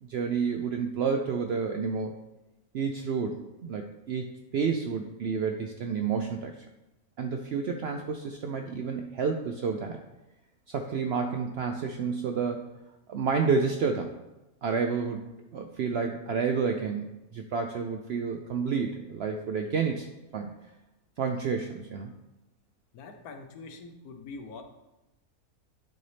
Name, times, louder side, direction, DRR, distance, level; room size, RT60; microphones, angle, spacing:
voice 1, 0.0-2.1 2.7-6.5 7.2-10.0 10.7-12.7 13.1-14.1 14.6-15.2 15.5-20.1 20.3-20.5 21.2-22.1, right 5 dB, 70° right, 4 dB, 0.6 m, -30 dB
voice 2, 22.9-24.6, left 3 dB, 80° left, 5 dB, 1.3 m, -44 dB
10.5 x 4.0 x 3.3 m, 0.98 s
omnidirectional pair, 1.5 m